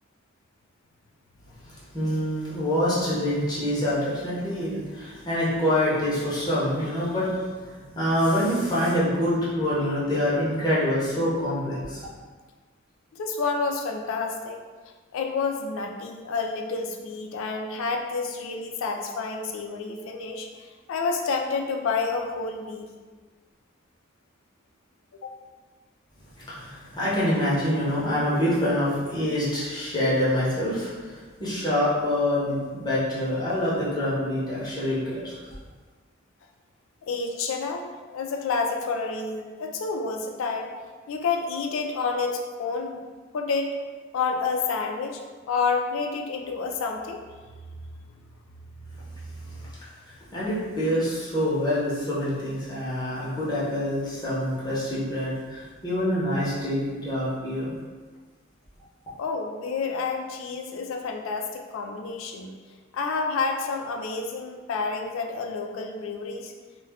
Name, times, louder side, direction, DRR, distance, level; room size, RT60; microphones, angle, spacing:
voice 1, 1.7-12.0 26.3-35.3 50.3-57.7, left 1 dB, 20° left, -8 dB, 0.8 m, -26 dB
voice 2, 13.1-14.6 15.1-22.9 25.2-25.3 37.1-37.9 38.1-40.7 41.1-42.9 43.3-43.8 44.1-45.2 45.5-47.2 49.3-49.7 59.2-62.5 62.9-66.5, left 4 dB, 85° left, 3 dB, 0.3 m, -29 dB
2.3 x 2.2 x 3.4 m, 1.4 s
head